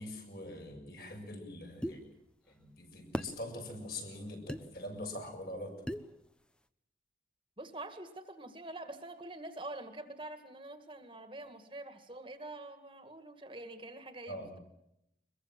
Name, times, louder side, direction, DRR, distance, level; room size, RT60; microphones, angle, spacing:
voice 1, 0.0-2.1 2.5-5.7 14.3-14.5, left 1 dB, 55° left, 3 dB, 7.1 m, -43 dB
sound 1, 1.8-2.0 3.1-3.4 4.5-4.6 5.9-6.1, equal, 5° left, 0.9 m, -36 dB
voice 2, 7.6-14.6, right 2 dB, 30° right, 8 dB, 2.0 m, -46 dB
23.5 x 22.5 x 7.6 m, 0.83 s
head